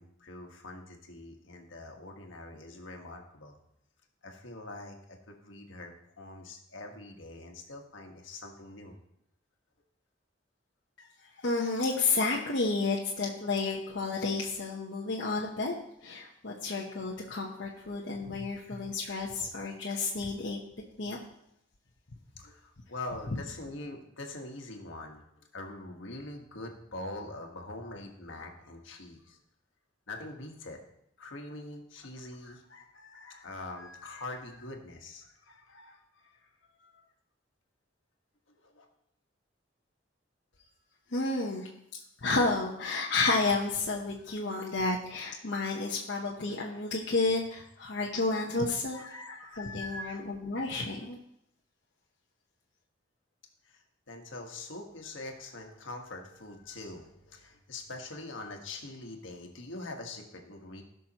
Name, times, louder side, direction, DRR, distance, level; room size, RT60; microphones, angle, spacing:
voice 1, 0.0-3.6 4.2-8.9 18.2-18.7 19.5-19.6 22.4-25.2 25.5-29.4 30.1-30.8 31.2-37.0 38.5-38.8 48.7-50.2 53.6-60.8, left 2 dB, 80° left, 2 dB, 1.5 m, -44 dB
voice 2, 11.4-15.7 16.0-20.6 21.0-21.2 41.1-41.7 42.2-49.0 49.6-51.2, left 3 dB, 65° left, -2 dB, 1.0 m, -31 dB
17.5 x 6.1 x 3.0 m, 0.76 s
head